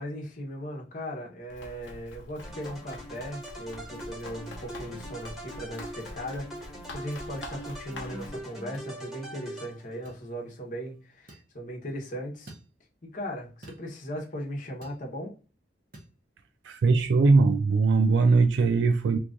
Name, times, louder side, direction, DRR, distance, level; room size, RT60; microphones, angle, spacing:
voice 1, 0.0-12.5 13.0-15.4, equal, 45° left, 1.0 m, -38 dB
Run, 1.5-8.4, left 2 dB, 90° left, 0.8 m, -45 dB
sound 1, 2.4-10.1, right 1 dB, ahead, 1.2 m, -42 dB
sound 2, 7.3-7.5 8.7-8.9 10.0-10.2 11.3-11.5 12.5-12.7 13.6-13.9 14.8-15.0 15.9-16.1, right 1 dB, 50° right, 0.9 m, -49 dB
voice 2, 16.6-19.2, right 4 dB, 70° right, 0.4 m, -21 dB
2.9 x 2.5 x 3.5 m
head